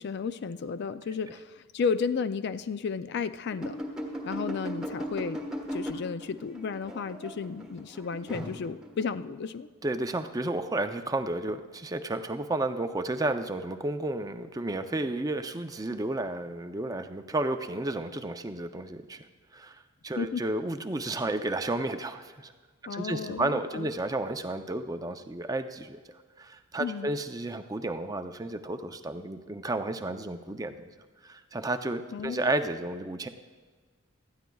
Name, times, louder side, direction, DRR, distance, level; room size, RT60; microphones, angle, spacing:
voice 1, 0.0-3.8 4.2-5.4 5.7-9.7 20.2-20.4 22.9-23.9 26.8-27.2 32.1-32.5, left 5 dB, 55° left, 13 dB, 0.4 m, -33 dB
sound 1, 3.5-9.0, equal, ahead, 1.4 m, -37 dB
voice 2, 9.8-19.3 19.5-22.5 22.9-26.0 26.4-30.9 31.2-33.3, right 2 dB, 15° right, 7 dB, 0.5 m, -32 dB
19.0 x 13.0 x 2.3 m, 1.4 s
head